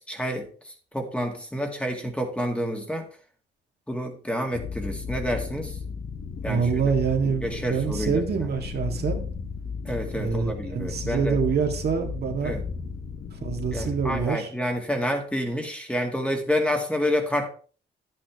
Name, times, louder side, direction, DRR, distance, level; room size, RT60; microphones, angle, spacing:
voice 1, 0.1-0.5 0.9-3.1 3.9-5.7 6.4-6.8 7.4-8.5 9.9-11.4 12.4-12.6 13.7-17.5, equal, 5° left, 3 dB, 2.0 m, -28 dB
sound 1, 4.5-14.3, left 5 dB, 50° left, 1.1 m, -34 dB
voice 2, 6.5-9.3 10.1-12.6 13.4-14.5, right 6 dB, 55° right, 3 dB, 1.9 m, -26 dB
10.0 x 8.9 x 3.5 m, 0.41 s
cardioid pair, 90°, 20 cm